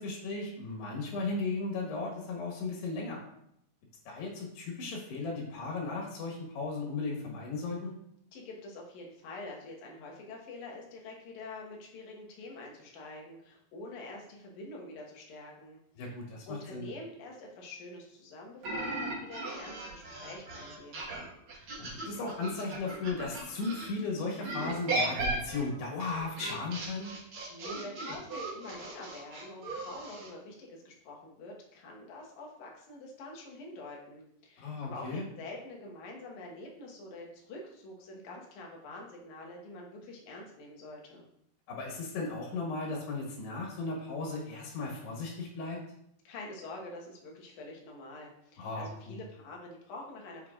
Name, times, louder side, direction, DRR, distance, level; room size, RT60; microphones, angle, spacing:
voice 1, 0.0-3.2 4.1-7.9 16.0-16.9 21.8-27.1 34.6-35.3 41.7-45.8 48.6-49.2, left 3 dB, 90° left, -2 dB, 3.5 m, -36 dB
voice 2, 8.3-15.8 16.0-16.1 16.5-20.9 27.2-41.2 46.2-50.5, left 2 dB, 65° left, -1 dB, 2.1 m, -46 dB
sound 1, 18.6-23.9 24.4-30.3, right 2 dB, 75° right, 1.2 m, -37 dB
7.6 x 5.8 x 2.4 m, 0.75 s
omnidirectional pair, 4.6 m